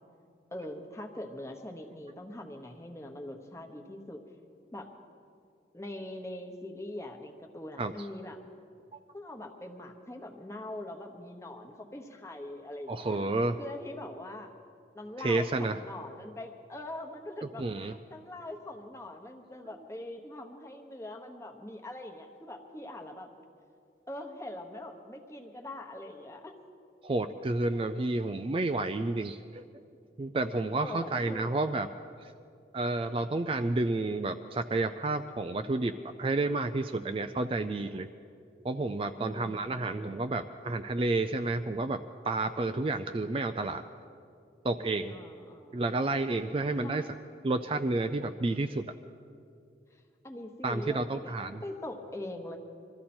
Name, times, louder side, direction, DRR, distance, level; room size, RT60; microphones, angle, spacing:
voice 1, 0.5-4.2 4.7-4.9 5.7-8.4 9.1-13.2 13.6-14.5 14.9-23.3 24.1-26.6 30.7-31.7 39.1-40.0 45.1-45.8 46.7-47.1 49.9-52.6, left 1 dB, 15° left, 3 dB, 1.1 m, -42 dB
voice 2, 12.9-13.6 15.2-15.8 17.6-18.0 27.0-29.6 30.2-31.9 32.2-32.3 32.7-35.9 36.2-38.1 38.6-42.0 42.2-43.8 44.6-45.2 45.7-47.0 47.4-48.8 50.6-51.6, right 2 dB, 30° right, 8 dB, 0.3 m, -30 dB
22.5 x 14.0 x 4.3 m, 2.4 s
head